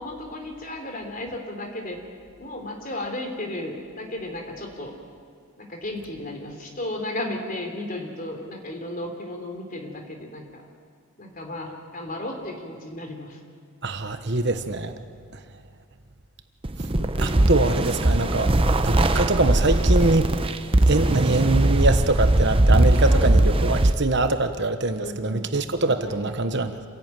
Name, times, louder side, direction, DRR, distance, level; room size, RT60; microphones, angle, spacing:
voice 1, 0.0-2.0 2.4-4.9 5.6-10.6 11.2-13.4 17.2-17.5 23.1-23.3 25.0-25.5 26.0-26.2, left 1 dB, 40° left, 3 dB, 3.4 m, -34 dB
voice 2, 13.8-14.9 17.2-20.3 20.9-26.8, right 2 dB, 50° right, 8 dB, 1.2 m, -24 dB
sound 1, 16.6-23.9, right 1 dB, 25° right, 0.7 m, -20 dB
27.0 x 16.5 x 9.2 m, 2.1 s
head